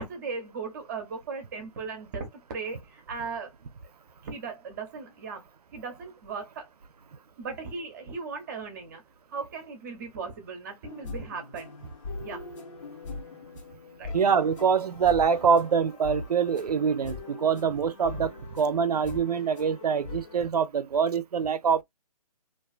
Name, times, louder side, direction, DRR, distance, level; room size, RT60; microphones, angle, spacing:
voice 1, 0.0-3.5 4.2-6.7 7.4-9.0 9.3-11.7 12.2-12.4 14.0-14.1, right 4 dB, 30° right, 0.7 m, -37 dB
sound 1, 10.8-20.5, left 4 dB, 55° left, 0.9 m, -41 dB
voice 2, 14.1-21.8, right 6 dB, 85° right, 0.5 m, -25 dB
2.5 x 2.3 x 2.3 m
hypercardioid pair, 155°, 19 cm